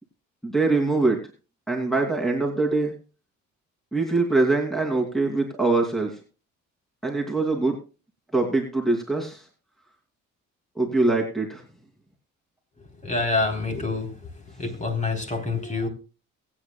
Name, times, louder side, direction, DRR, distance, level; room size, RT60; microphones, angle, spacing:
voice 1, 0.4-1.2 1.7-2.9 3.9-6.1 7.0-7.8 8.3-9.4 10.8-11.6, right 3 dB, ahead, 2 dB, 2.8 m, -23 dB
voice 2, 13.0-14.1 14.6-15.9, left 3 dB, 25° left, 4 dB, 3.8 m, -26 dB
23.0 x 8.9 x 2.3 m, 0.32 s
cardioid pair, 90°, 30 cm